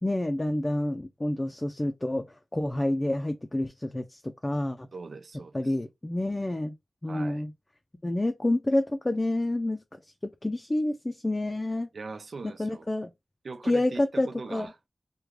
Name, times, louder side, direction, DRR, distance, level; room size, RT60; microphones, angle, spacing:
voice 1, 0.0-2.3 2.5-4.9 5.5-6.7 7.0-7.5 8.0-9.8 10.2-11.9 12.6-13.1 13.6-14.7, left 1 dB, 25° left, 0.4 m, -28 dB
voice 2, 4.9-5.7 7.1-7.4 11.9-12.9 13.4-14.8, right 4 dB, 85° right, 0.4 m, -41 dB
3.5 x 2.2 x 3.1 m
wide cardioid pair, 80°, 0 cm